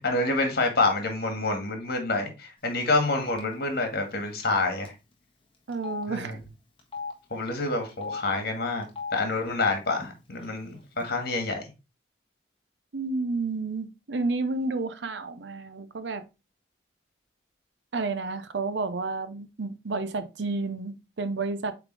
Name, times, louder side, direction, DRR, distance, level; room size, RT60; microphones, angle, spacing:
voice 1, 0.0-4.9 6.1-6.4 7.3-8.9 9.1-11.6, left 3 dB, 60° left, 1.9 m, -27 dB
Telephone, 2.9-3.1 3.4-3.5 4.4-4.6 4.8-4.9 5.7-6.0 6.8-7.1 7.9-8.2 8.8-9.2 10.0-10.1 10.4-11.0, left 4 dB, 30° left, 1.4 m, -37 dB
voice 2, 5.7-6.4 12.9-16.2 17.9-21.7, right 3 dB, 75° right, 0.7 m, -31 dB
8.2 x 3.5 x 3.4 m
head